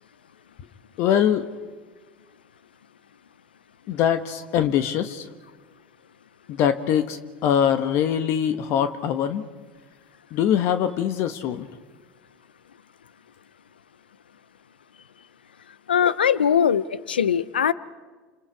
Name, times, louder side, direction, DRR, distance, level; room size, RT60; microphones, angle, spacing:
voice 1, 1.0-1.5 3.9-5.3 6.5-9.4 10.3-11.7, left 9 dB, 55° left, 10 dB, 1.2 m, -23 dB
voice 2, 15.9-17.7, left 8 dB, 85° left, 19 dB, 0.7 m, -21 dB
29.0 x 27.0 x 4.8 m, 1.4 s
hypercardioid pair, 75°, 5 cm